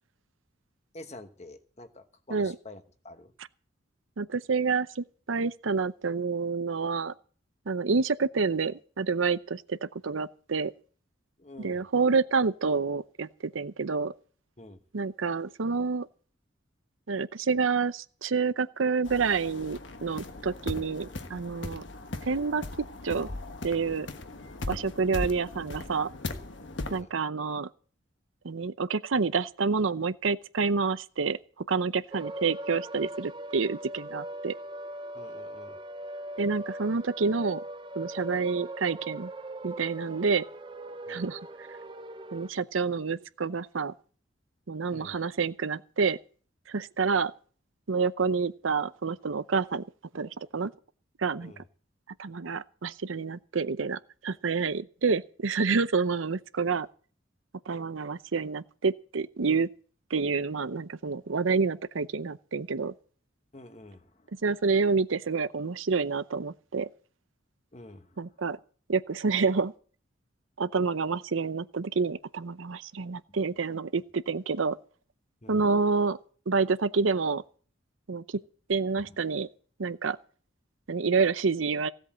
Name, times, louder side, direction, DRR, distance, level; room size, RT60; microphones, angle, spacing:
voice 1, 0.9-3.3 11.4-11.8 14.6-14.8 26.8-27.1 35.1-35.8 41.1-41.3 44.9-45.2 51.4-51.6 63.5-64.3 67.7-68.2 73.3-73.4 75.4-75.6 79.0-79.1, left 2 dB, 35° left, 1.2 m, -48 dB
voice 2, 4.2-7.1 7.7-10.7 11.6-13.3 13.5-14.1 14.9-16.1 17.1-21.8 22.2-22.6 23.0-23.3 23.6-24.1 24.7-26.1 26.9-27.7 28.4-31.4 31.7-34.5 36.4-37.6 38.0-39.3 39.6-40.4 41.1-41.4 42.3-43.9 44.7-46.2 46.7-47.3 47.9-49.8 50.1-50.7 51.2-51.5 52.2-56.9 57.7-59.7 60.1-62.9 64.4-66.9 68.2-68.6 68.9-69.7 70.6-74.8 75.5-76.2 76.5-77.4 78.1-78.4 78.7-79.5 79.8-80.2 80.9-81.9, right 4 dB, 90° right, 0.7 m, -28 dB
sound 1, 19.0-27.0, left 2 dB, 70° left, 1.3 m, -38 dB
sound 2, 32.1-42.5, right 1 dB, 25° right, 0.6 m, -40 dB
16.0 x 8.0 x 7.6 m
head